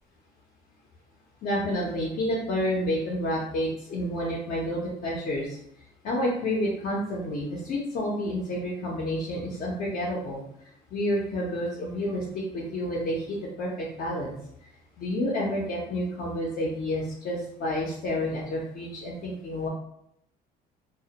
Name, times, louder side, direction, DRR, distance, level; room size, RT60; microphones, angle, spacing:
voice 1, 1.4-5.6 6.0-10.4 10.9-14.3 15.0-19.7, left 1 dB, 55° left, -4 dB, 0.5 m, -29 dB
2.1 x 2.1 x 2.8 m, 0.76 s
cardioid pair, 110°, 17 cm